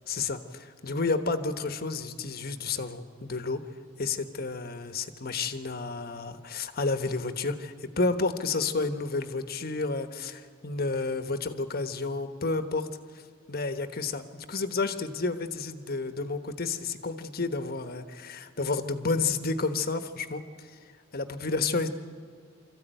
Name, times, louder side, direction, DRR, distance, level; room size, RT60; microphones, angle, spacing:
voice 1, 0.1-3.7 4.0-12.9 13.5-20.7 21.1-21.9, left 3 dB, 55° left, 9 dB, 1.2 m, -31 dB
25.0 x 14.5 x 9.1 m, 2.2 s
head